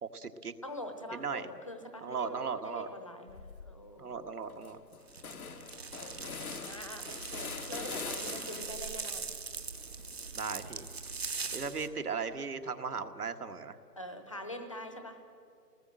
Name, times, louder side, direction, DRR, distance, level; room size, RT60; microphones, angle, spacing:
voice 1, 0.0-0.5 1.1-1.5 2.0-2.9 4.0-4.8 10.3-10.9 11.5-13.8, right 5 dB, 65° right, 8 dB, 1.6 m, -37 dB
voice 2, 0.6-4.6 5.7-9.2 14.0-15.2, left 1 dB, 20° left, 7 dB, 1.0 m, -45 dB
sound 1, 3.3-3.8 4.2-4.3 4.5-8.9 9.3-11.4, left 5 dB, 60° left, 1.2 m, -45 dB
sound 2, 5.1-11.9, right 5 dB, 40° right, 1.2 m, -41 dB
29.0 x 19.5 x 7.7 m, 2.5 s
hypercardioid pair, 175°, 48 cm